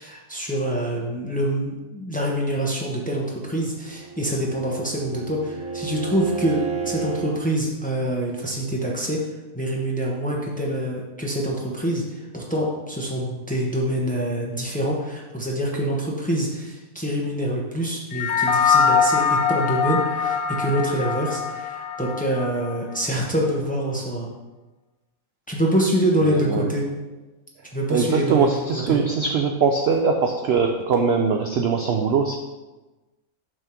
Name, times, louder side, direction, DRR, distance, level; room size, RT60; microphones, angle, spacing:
voice 1, 0.0-9.2 9.5-24.3 25.5-26.9 27.7-29.0, equal, 5° left, -2 dB, 0.8 m, -25 dB
Bowed string instrument, 3.7-7.4, right 7 dB, 10° right, 0.3 m, -32 dB
sound 1, 18.1-22.8, left 6 dB, 80° left, 0.5 m, -22 dB
voice 2, 26.2-26.7 27.9-32.4, right 5 dB, 65° right, 3 dB, 0.6 m, -21 dB
6.3 x 3.5 x 5.9 m, 1.1 s
omnidirectional pair, 1.6 m